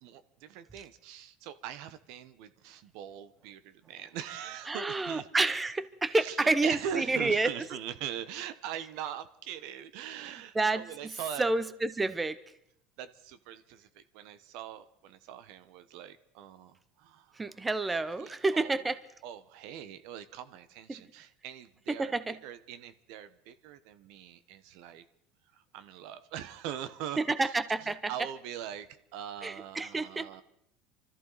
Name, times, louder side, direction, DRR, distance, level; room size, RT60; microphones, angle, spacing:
voice 1, 0.0-5.3 6.1-11.4 13.0-17.5 18.2-18.8 19.2-25.1 25.5-27.5 27.8-30.4, right 9 dB, 70° right, 13 dB, 1.0 m, -42 dB
voice 2, 4.7-7.5 10.5-11.1 11.4-12.4 17.3-19.0 20.9-21.0 21.9-22.4 27.2-28.1 29.4-30.3, right 3 dB, 15° right, 14 dB, 0.8 m, -29 dB
25.0 x 14.0 x 4.0 m, 0.73 s
supercardioid pair, 110°, 0 cm